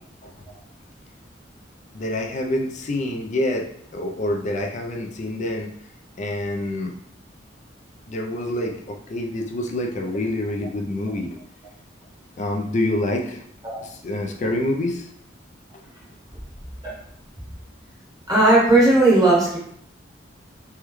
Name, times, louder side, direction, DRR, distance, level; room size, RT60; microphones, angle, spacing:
voice 1, 1.9-5.7 6.2-6.9 8.1-11.4 12.4-13.4 13.8-15.1, left 1 dB, 40° left, 2 dB, 0.4 m, -27 dB
voice 2, 18.3-19.6, right 2 dB, 20° right, -6 dB, 0.9 m, -16 dB
3.4 x 2.2 x 3.0 m, 0.67 s
head